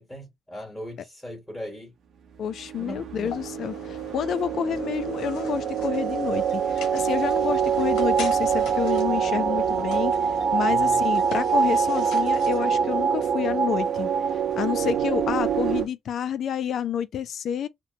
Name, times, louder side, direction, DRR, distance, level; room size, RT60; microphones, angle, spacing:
voice 1, 0.0-1.9 2.8-3.4 10.7-11.0 14.7-15.1, equal, 10° left, 1.7 m, -39 dB
voice 2, 2.4-14.1 14.6-17.7, left 8 dB, 65° left, 0.4 m, -29 dB
sound 1, 2.5-15.9, right 7 dB, 60° right, 0.7 m, -25 dB
sound 2, 3.2-15.9, left 6 dB, 85° left, 0.8 m, -42 dB
2.9 x 2.1 x 2.6 m
cardioid pair, 90°, 0 cm